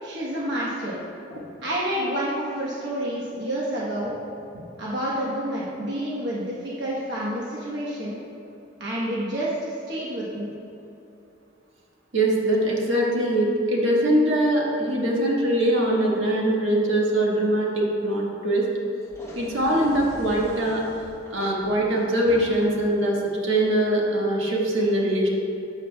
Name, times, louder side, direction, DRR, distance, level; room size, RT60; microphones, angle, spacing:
voice 1, 0.0-1.0 1.6-4.2 4.8-8.2 8.8-10.5, right 1 dB, 60° right, -6 dB, 1.1 m, -29 dB
voice 2, 12.1-18.6 19.3-20.8 21.3-25.3, right 1 dB, 80° right, -3 dB, 1.5 m, -22 dB
sound 1, 19.0-23.0, equal, 15° left, 1.0 m, -42 dB
12.0 x 7.2 x 2.3 m, 2.8 s
head